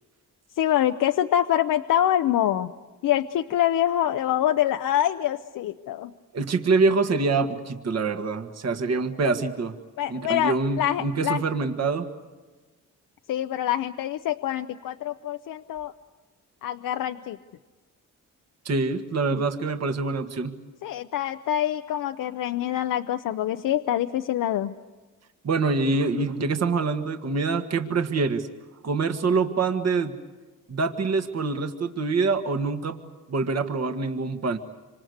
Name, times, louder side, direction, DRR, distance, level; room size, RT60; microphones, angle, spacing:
voice 1, 0.6-2.7 3.0-6.1 10.0-11.4 13.3-15.9 16.6-17.4 19.3-19.4 20.8-24.8, left 11 dB, 80° left, 8 dB, 0.8 m, -25 dB
voice 2, 6.3-9.7 10.1-12.1 18.7-20.6 25.4-28.5 28.8-30.2 30.7-33.0 33.3-34.6, right 4 dB, 50° right, 7 dB, 1.8 m, -25 dB
26.5 x 25.5 x 8.0 m, 1.3 s
cardioid pair, 85°, 33 cm